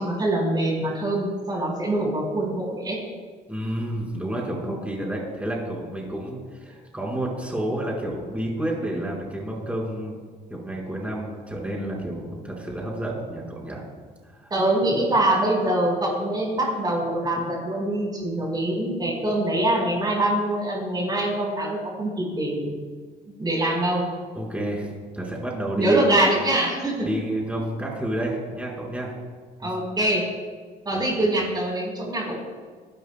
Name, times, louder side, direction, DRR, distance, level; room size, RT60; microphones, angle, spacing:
voice 1, 0.0-3.0 14.5-22.7 23.4-24.0 25.7-27.1 29.6-30.2 30.8-32.4, right 1 dB, 25° right, -2 dB, 4.7 m, -24 dB
voice 2, 3.5-10.2 10.5-13.8 14.2-14.5 24.3-26.0 27.0-29.1 29.6-29.7 30.9-31.1, right 1 dB, 10° right, -2 dB, 5.0 m, -30 dB
27.5 x 13.0 x 2.3 m, 1.5 s
cardioid pair, 110°, 17 cm